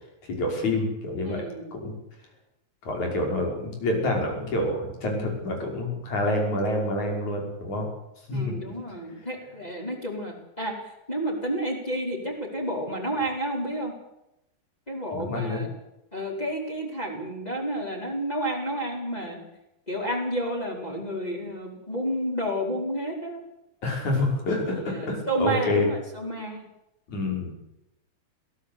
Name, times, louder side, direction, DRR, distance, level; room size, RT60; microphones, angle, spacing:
voice 1, 0.4-1.4 1.7-1.9 2.8-7.9 8.3-8.5 15.1-15.6 23.8-25.9 27.1-27.5, left 1 dB, 75° left, 2 dB, 7.0 m, -27 dB
voice 2, 1.2-1.6 8.3-10.8 11.1-13.9 14.9-15.7 16.1-19.4 19.9-23.4 24.7-26.6, right 1 dB, 15° left, -2 dB, 5.0 m, -30 dB
22.0 x 17.0 x 8.5 m, 0.87 s
omnidirectional pair, 3.3 m